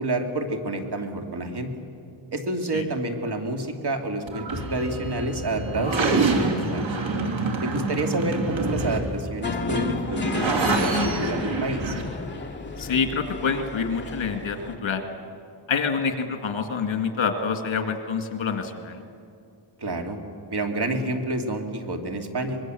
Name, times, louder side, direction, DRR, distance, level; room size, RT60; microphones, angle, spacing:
voice 1, 0.0-1.7 2.3-6.9 7.6-12.0 19.8-20.2 20.5-22.6, right 2 dB, 55° right, 4 dB, 2.6 m, -29 dB
sound 1, 4.3-12.0, right 3 dB, 70° right, 3.1 m, -27 dB
sound 2, 9.4-14.7, left 3 dB, 25° left, 2.5 m, -31 dB
voice 2, 12.8-15.0 15.7-19.0, left 5 dB, 70° left, 5 dB, 2.3 m, -27 dB
24.5 x 22.0 x 7.8 m, 2.4 s
wide cardioid pair, 105°, 47 cm